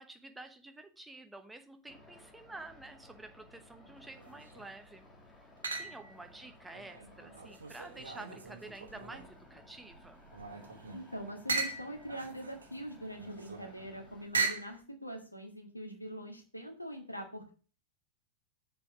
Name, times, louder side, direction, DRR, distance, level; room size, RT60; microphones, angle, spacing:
voice 1, 0.0-5.1 5.8-10.2, right 2 dB, 5° right, 6 dB, 1.0 m, -50 dB
sound 1, 1.9-14.3, left 1 dB, 10° left, 2.7 m, -58 dB
sound 2, 4.1-4.7 5.6-6.2 6.7-9.4 9.9-14.8, right 4 dB, 75° right, 1.1 m, -39 dB
voice 2, 10.9-17.5, equal, 85° left, 3 dB, 1.7 m, -43 dB
7.4 x 4.7 x 6.1 m, 0.38 s
figure-of-eight pair, 90°, 0 cm